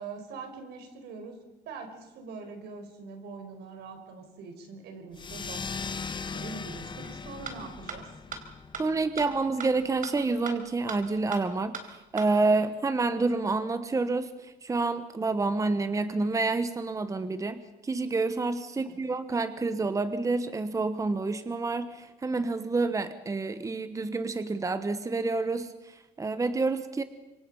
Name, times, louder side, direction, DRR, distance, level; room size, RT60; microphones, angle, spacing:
voice 1, 0.0-1.4 1.6-8.1 18.7-19.0, right 4 dB, 80° right, 6 dB, 5.0 m, -43 dB
sound 1, 5.1-10.2, left 5 dB, 25° left, 1.3 m, -39 dB
sound 2, 7.0-7.1 7.5-7.6 7.9-8.0 8.3-8.4 8.7-8.8 9.2-9.3 9.6-9.7 10.0-10.1 10.5-10.6 10.9-11.0 11.3-11.4 11.7-11.8 12.2-12.3, right 6 dB, 55° right, 4.1 m, -36 dB
voice 2, 8.8-27.0, right 3 dB, 20° right, 11 dB, 1.2 m, -28 dB
26.5 x 24.0 x 5.6 m, 1.1 s
cardioid pair, 110°, 17 cm